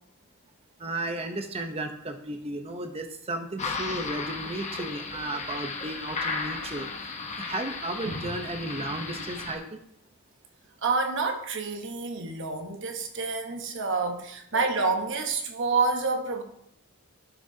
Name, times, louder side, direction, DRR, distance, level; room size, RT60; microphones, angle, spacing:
voice 1, 0.8-9.8, right 2 dB, 25° right, 0.8 m, -34 dB
sound 1, 3.6-9.6, left 4 dB, 30° left, 0.9 m, -35 dB
voice 2, 10.8-16.4, right 4 dB, 55° right, 1.1 m, -28 dB
11.5 x 6.0 x 2.8 m
head